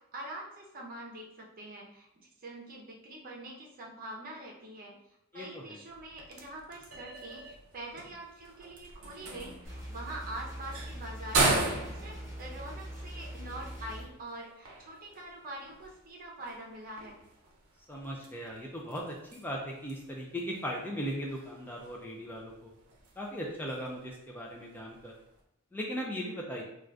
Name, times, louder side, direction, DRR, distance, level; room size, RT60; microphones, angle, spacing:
voice 1, 0.0-2.1 2.4-4.9 5.3-17.2, right 1 dB, 45° right, -1 dB, 0.6 m, -44 dB
sound 1, 5.9-25.4, right 2 dB, 85° right, 0.6 m, -38 dB
sound 2, 9.6-14.0, equal, 15° right, 0.9 m, -42 dB
voice 2, 17.9-22.7 23.2-25.1 25.7-26.6, equal, 10° left, -2 dB, 0.3 m, -38 dB
2.5 x 2.3 x 3.3 m, 0.80 s
head